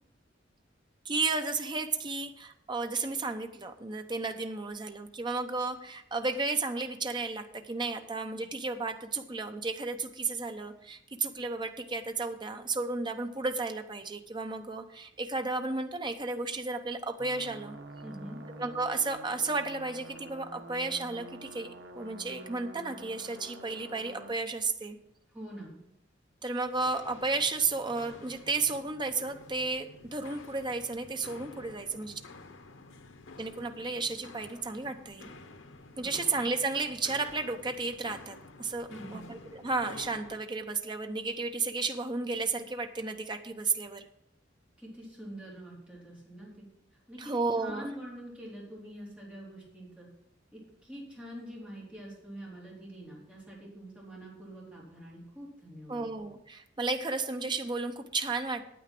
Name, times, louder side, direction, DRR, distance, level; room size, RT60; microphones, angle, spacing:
voice 1, 1.0-17.8 18.6-25.0 26.4-32.2 33.4-35.3 36.0-44.1 47.2-47.9 55.9-58.6, right 3 dB, 25° right, 6 dB, 0.8 m, -33 dB
sound 1, 17.2-24.3, right 2 dB, 60° right, 1.2 m, -47 dB
voice 2, 18.0-18.4 25.3-25.7 35.9-36.2 38.9-39.3 44.8-46.7 47.1-47.3 47.6-50.1 50.5-56.1, right 1 dB, 5° right, -6 dB, 4.1 m, -45 dB
Walk footsteps, 26.6-40.4, left 3 dB, 85° left, 0.9 m, -50 dB
9.3 x 8.7 x 6.0 m, 0.78 s
head